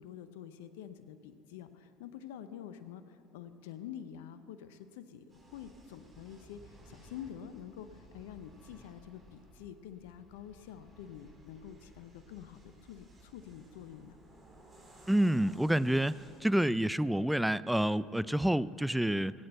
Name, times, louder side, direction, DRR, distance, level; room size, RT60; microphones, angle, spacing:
voice 1, 0.0-5.2 5.5-14.2, left 9 dB, 80° left, 11 dB, 0.7 m, -47 dB
sound 1, 5.3-16.4, right 1 dB, 30° right, 4.0 m, -58 dB
voice 2, 15.1-16.1 16.4-19.3, right 1 dB, 5° right, 17 dB, 0.4 m, -28 dB
17.0 x 8.8 x 7.8 m, 2.8 s
hypercardioid pair, 75°, 0 cm